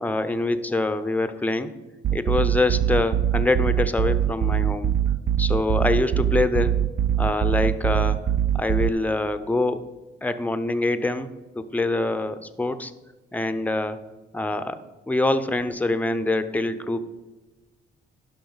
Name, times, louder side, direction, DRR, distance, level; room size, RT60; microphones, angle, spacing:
voice 1, 0.0-1.7 2.1-4.9 5.4-6.9 7.2-8.2 8.5-9.8 10.2-12.9 13.3-14.0 14.3-17.1, left 2 dB, 10° left, 10 dB, 0.6 m, -25 dB
sound 1, 2.0-8.9, right 10 dB, 50° right, 0.4 m, -23 dB
11.5 x 5.8 x 4.0 m, 1.1 s
cardioid pair, 90°, 20 cm